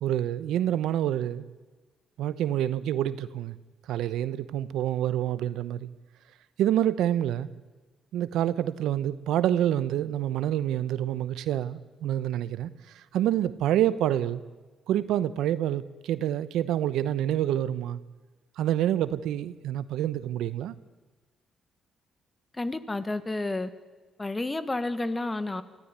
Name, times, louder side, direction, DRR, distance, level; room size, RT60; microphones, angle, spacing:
voice 1, 0.0-1.5 2.2-3.5 3.9-5.9 6.6-7.5 8.1-12.7 12.9-14.4 14.9-18.0 18.6-20.7, right 11 dB, 85° right, 0.9 m, -27 dB
voice 2, 22.5-23.7 24.2-25.6, left 2 dB, 20° left, 1.6 m, -30 dB
24.5 x 15.0 x 9.7 m
cardioid pair, 90°, 0 cm